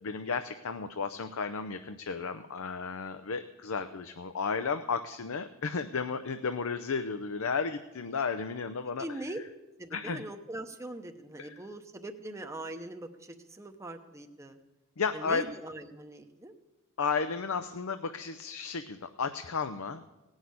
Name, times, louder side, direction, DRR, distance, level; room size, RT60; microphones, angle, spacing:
voice 1, 0.0-9.1 9.9-10.2 11.4-11.5 15.0-15.5 17.0-20.3, left 5 dB, 80° left, 8 dB, 0.6 m, -33 dB
voice 2, 9.0-9.4 9.8-14.6 15.1-16.5, right 1 dB, 15° right, 5 dB, 0.8 m, -41 dB
17.0 x 6.4 x 9.4 m, 1.1 s
head